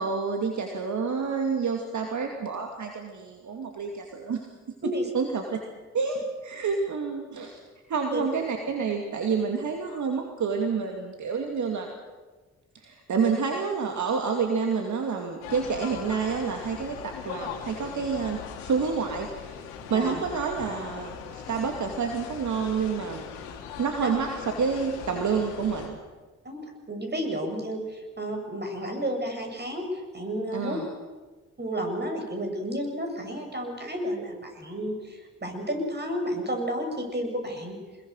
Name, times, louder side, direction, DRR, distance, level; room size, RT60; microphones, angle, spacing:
voice 1, 0.0-4.5 5.1-5.6 5.9-7.6 7.9-11.9 12.7-19.6 19.9-23.2 23.8-26.0 30.5-30.9, right 5 dB, 60° right, 3 dB, 2.5 m, -28 dB
sound 1, 15.4-25.9, left 7 dB, 85° left, 2.0 m, -40 dB
voice 2, 19.9-20.2 24.0-24.1 26.4-30.8 31.6-37.8, equal, 30° right, 4 dB, 7.2 m, -32 dB
24.0 x 21.5 x 6.7 m, 1.3 s
hypercardioid pair, 40°, 33 cm